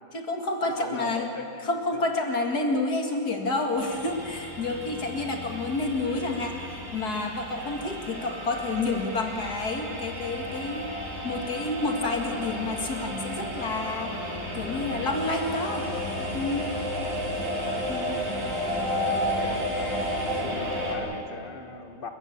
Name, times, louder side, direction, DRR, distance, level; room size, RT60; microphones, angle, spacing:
voice 1, 0.1-1.3 1.6-6.5 6.9-10.9 11.2-15.9 16.2-16.7 17.9-18.2, left 2 dB, 55° left, 2 dB, 2.5 m, -29 dB
voice 2, 0.6-1.7 14.7-14.8 17.0-17.4 19.2-19.7 20.3-22.1, left 3 dB, 30° left, 6 dB, 1.5 m, -40 dB
sound 1, 3.8-21.0, equal, 85° right, 4.4 m, -32 dB
sound 2, 15.1-20.5, right 1 dB, 65° right, 5.7 m, -51 dB
29.5 x 15.0 x 7.3 m, 2.7 s
omnidirectional pair, 2.1 m